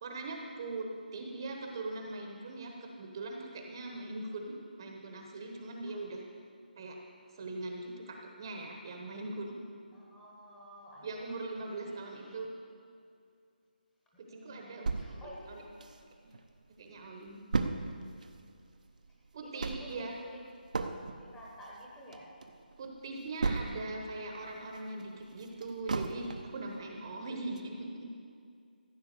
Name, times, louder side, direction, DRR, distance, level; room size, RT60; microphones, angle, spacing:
voice 1, 0.0-6.2 6.7-7.0 7.3-9.6 11.0-12.5 14.2-14.9 15.4-15.6 16.2-16.3 16.8-17.4 19.3-20.1 22.8-28.1, right 2 dB, 25° right, 2 dB, 1.1 m, -41 dB
voice 2, 9.9-11.2 11.8-12.4 14.3-15.9 19.4-20.5 21.2-22.3, equal, 5° left, -5 dB, 1.3 m, -51 dB
sound 1, 14.9-16.4 16.8-16.9 17.1-24.1 24.5-26.6 27.1-27.2 27.6-27.7, right 4 dB, 50° right, 0.8 m, -36 dB
14.5 x 8.3 x 6.7 m, 2.3 s
figure-of-eight pair, 170°, 5 cm